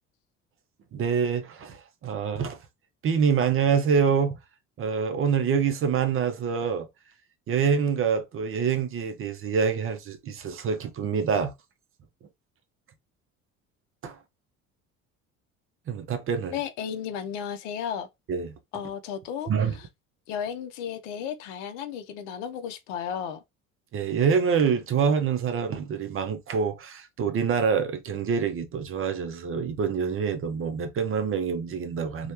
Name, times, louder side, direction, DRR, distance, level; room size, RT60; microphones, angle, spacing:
voice 1, 0.9-2.6 3.0-4.4 4.8-6.9 7.5-11.5 14.0-14.2 15.9-16.5 18.3-18.5 19.5-19.8 23.9-32.3, right 6 dB, 30° right, 0.6 m, -26 dB
voice 2, 16.5-18.1 18.7-19.9 20.3-23.4, left 8 dB, 60° left, 0.6 m, -34 dB
3.1 x 2.2 x 2.9 m
figure-of-eight pair, 55°, 42 cm